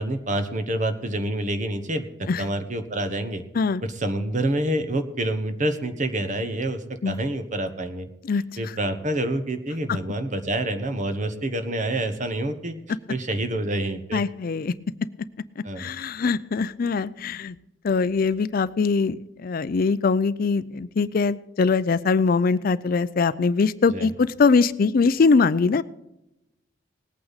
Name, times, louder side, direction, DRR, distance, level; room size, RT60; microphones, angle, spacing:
voice 1, 0.0-3.4 3.8-8.1 8.6-12.8 13.1-14.2 15.6-15.9 23.9-24.1, right 1 dB, 40° right, 8 dB, 1.2 m, -27 dB
voice 2, 14.1-14.7 15.6-17.6 17.8-25.8, left 4 dB, 50° left, 16 dB, 0.4 m, -22 dB
19.0 x 8.7 x 4.1 m, 0.91 s
head